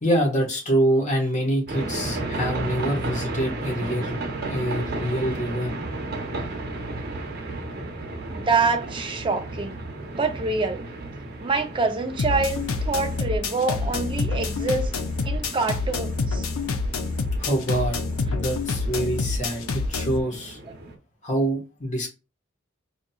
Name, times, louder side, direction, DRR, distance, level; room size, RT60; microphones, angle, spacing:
voice 1, 0.0-4.2 4.5-5.7 17.4-20.6 21.2-22.1, right 1 dB, 35° left, 1.2 m, -26 dB
sound 1, 1.7-21.0, right 2 dB, 50° right, 0.8 m, -34 dB
voice 2, 8.3-9.8 10.2-10.9 11.4-14.9 15.2-16.4, right 3 dB, 25° right, 0.5 m, -26 dB
sound 2, 12.2-20.2, left 4 dB, 90° left, 0.5 m, -27 dB
4.9 x 2.8 x 2.3 m
head